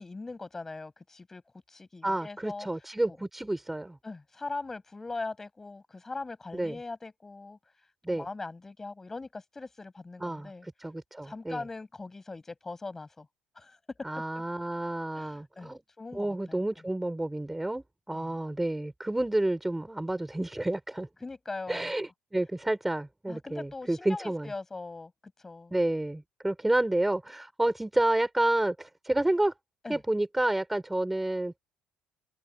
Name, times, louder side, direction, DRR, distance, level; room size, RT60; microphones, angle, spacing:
voice 1, 0.0-1.4 1.7-2.7 4.0-7.6 8.1-10.7 11.2-13.3 13.5-14.2 15.1-16.6 18.1-18.4 21.2-21.9 23.3-25.1 25.4-25.7 29.8-30.0, left 3 dB, 15° left, 6.6 m, -41 dB
voice 2, 2.0-4.0 6.5-6.8 8.0-8.3 10.2-11.6 14.0-15.8 16.1-21.1 21.7-24.5 25.7-29.5 29.9-31.6, right 1 dB, 5° right, 4.7 m, -30 dB
cardioid pair, 135°, 2 cm